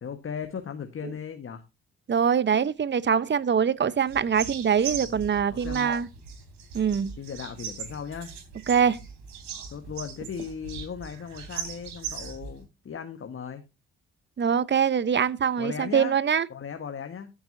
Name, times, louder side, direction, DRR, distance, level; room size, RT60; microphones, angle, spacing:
voice 1, 0.0-1.6 5.0-5.9 7.2-8.3 9.7-13.6 15.6-16.2 16.5-17.3, left 7 dB, 45° left, 1.5 m, -37 dB
voice 2, 2.1-6.1 6.7-7.1 8.7-9.0 14.4-16.5, right 7 dB, 35° right, 1.0 m, -23 dB
sound 1, 4.1-12.6, right 7 dB, 70° right, 3.4 m, -39 dB
14.0 x 8.9 x 2.8 m
hypercardioid pair, 40°, 30 cm